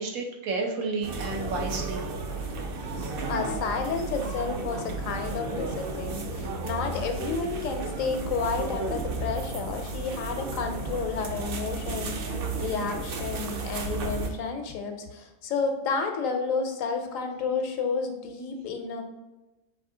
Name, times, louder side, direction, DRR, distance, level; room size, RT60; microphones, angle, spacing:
voice 1, 0.0-2.0, right 3 dB, 80° right, 0 dB, 1.2 m, -31 dB
sound 1, 1.0-14.3, right 3 dB, 60° right, 0.6 m, -33 dB
voice 2, 3.2-19.0, left 5 dB, 75° left, 5 dB, 1.0 m, -31 dB
4.8 x 2.7 x 3.7 m, 1.1 s
omnidirectional pair, 1.5 m